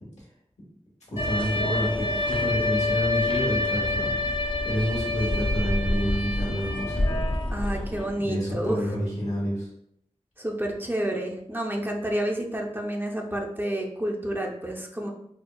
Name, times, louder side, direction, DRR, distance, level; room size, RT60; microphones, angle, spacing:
voice 1, 1.1-4.2 4.6-7.2 8.2-9.7, equal, 75° left, -5 dB, 1.2 m, -29 dB
sound 1, 1.2-8.1, left 2 dB, 45° left, 0.5 m, -27 dB
voice 2, 7.5-8.8 10.4-15.1, right 1 dB, 15° right, 0 dB, 0.4 m, -29 dB
4.3 x 2.1 x 2.3 m, 0.72 s
wide cardioid pair, 65°, 12 cm